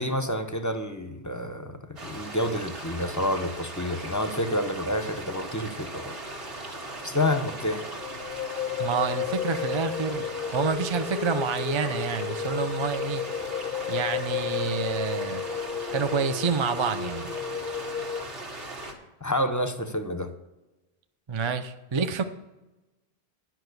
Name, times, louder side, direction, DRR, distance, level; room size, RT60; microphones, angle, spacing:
voice 1, 0.0-6.2 6.6-7.8 19.2-20.3, left 1 dB, 20° left, 0.7 m, -29 dB
sound 1, 2.0-18.9, right 2 dB, 70° right, 2.2 m, -39 dB
sound 2, 8.0-18.2, left 9 dB, 65° left, 0.7 m, -33 dB
voice 2, 8.8-10.3 10.5-13.2 13.9-15.4 15.9-17.3 21.3-22.2, right 5 dB, 35° right, 0.6 m, -28 dB
11.0 x 5.8 x 8.1 m
omnidirectional pair, 1.0 m